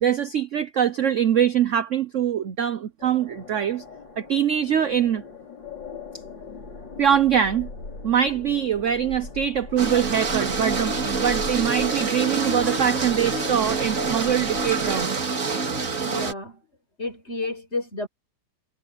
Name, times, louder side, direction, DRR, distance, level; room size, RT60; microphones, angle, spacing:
voice 1, 0.0-3.8 4.2-5.2 7.0-7.7 8.0-15.1, right 9 dB, 65° right, 0.7 m, -23 dB
sound 1, 3.0-15.1, left 4 dB, 60° left, 5.4 m, -40 dB
sound 2, 9.8-16.3, right 4 dB, 40° right, 2.5 m, -26 dB
voice 2, 16.0-16.6 17.0-18.1, left 2 dB, 30° left, 5.6 m, -31 dB
omnidirectional pair, 2.3 m